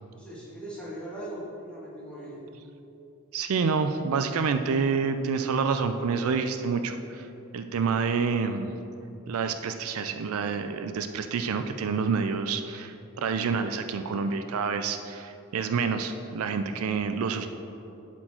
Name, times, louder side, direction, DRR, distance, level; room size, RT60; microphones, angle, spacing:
voice 1, 0.1-2.4, right 1 dB, 5° left, -8 dB, 1.8 m, -39 dB
voice 2, 3.3-7.3 7.5-8.8 9.3-17.5, right 5 dB, 75° right, 8 dB, 0.4 m, -28 dB
11.5 x 4.5 x 4.3 m, 2.9 s
head